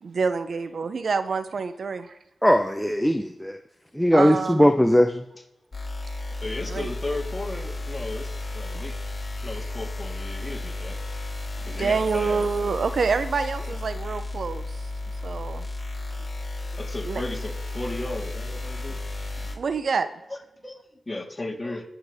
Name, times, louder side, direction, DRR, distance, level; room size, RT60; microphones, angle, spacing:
voice 1, 0.0-2.1 4.1-4.7 6.7-6.9 8.7-8.8 11.6-14.6 15.2-15.7 17.0-17.2 19.5-20.1, right 5 dB, 70° right, 12 dB, 0.7 m, -27 dB
voice 2, 2.4-3.6 3.9-5.2, equal, 5° left, 6 dB, 0.9 m, -19 dB
sound 1, 5.7-19.5, left 2 dB, 40° left, 4.3 m, -33 dB
voice 3, 6.4-8.9 9.4-11.0 11.7-12.5 13.7-13.8 15.2-15.3 16.1-16.2 16.8-19.0 19.3-19.5 20.3-20.8 21.1-21.8, left 2 dB, 25° left, -1 dB, 3.6 m, -35 dB
21.0 x 8.4 x 3.6 m, 0.87 s
cardioid pair, 45°, 0 cm